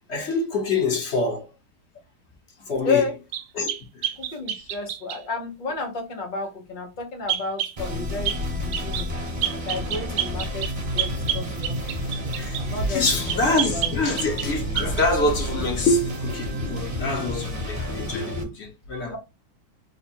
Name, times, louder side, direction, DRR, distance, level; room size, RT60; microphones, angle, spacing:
voice 1, 0.1-1.5 2.7-3.0 3.5-3.7 3.9-4.1 12.3-19.2, left 2 dB, 50° left, 0.8 m, -25 dB
sound 1, 3.3-5.2 7.3-7.8 8.3-8.4 8.7-9.1 9.4-12.7 13.3-14.5 14.8-15.1, right 11 dB, 70° right, 1.0 m, -29 dB
voice 2, 4.2-9.1 9.6-11.8 12.0-13.1 13.5-13.9 15.5-15.7, left 4 dB, 75° left, 0.4 m, -31 dB
sound 2, 7.8-18.4, equal, 35° right, 1.0 m, -31 dB
sound 3, 9.0-15.3, left 1 dB, 55° right, 0.5 m, -36 dB
3.5 x 2.2 x 4.3 m
omnidirectional pair, 2.2 m